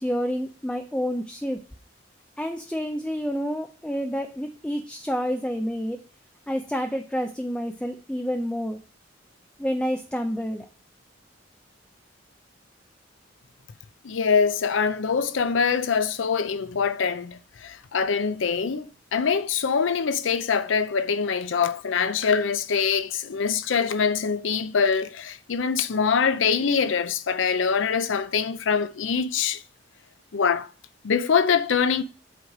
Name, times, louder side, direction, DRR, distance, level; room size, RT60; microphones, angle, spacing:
voice 1, 0.0-1.6 2.4-6.0 6.5-8.8 9.6-10.7, equal, 5° left, 0.4 m, -29 dB
voice 2, 14.0-29.6 30.3-30.7 31.0-32.0, left 6 dB, 80° left, 0.5 m, -24 dB
8.1 x 3.1 x 4.8 m
head